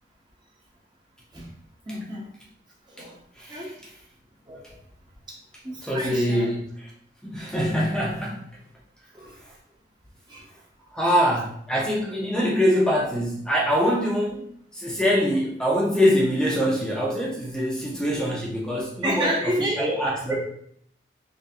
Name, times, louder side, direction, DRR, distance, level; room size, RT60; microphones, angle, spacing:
voice 1, 1.9-2.3 2.9-3.2 3.5-3.9 4.5-4.8 5.6-6.5 9.1-9.4 10.3-10.5 19.0-19.8 20.3-20.4, right 1 dB, 25° right, -2 dB, 0.9 m, -30 dB
voice 2, 3.4-3.9 5.8-6.6 7.2-8.4 9.3-9.5 10.5-10.6 10.9-20.4, equal, 5° left, -3 dB, 0.6 m, -24 dB
3.8 x 3.3 x 2.7 m, 0.65 s
head